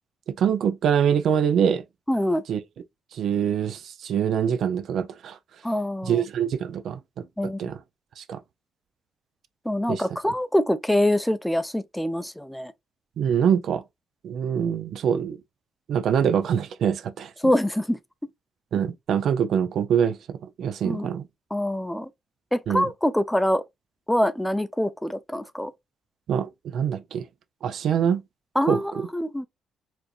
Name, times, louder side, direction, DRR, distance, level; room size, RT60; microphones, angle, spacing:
voice 1, 0.3-1.8 2.5-2.6 3.1-5.4 6.0-7.8 8.2-8.4 9.9-10.0 13.2-13.8 14.2-15.4 15.9-17.3 18.7-21.2 22.7-22.9 26.3-27.3 27.6-28.2 28.7-29.1, right 8 dB, 70° right, 0.5 m, -24 dB
voice 2, 2.1-2.4 5.6-6.2 7.4-7.7 9.7-12.7 17.4-18.0 20.8-21.1 21.5-22.1 22.5-23.6 24.1-25.7 28.6-29.5, left 1 dB, 5° left, 0.5 m, -25 dB
4.4 x 2.6 x 2.3 m
cardioid pair, 90°, 0 cm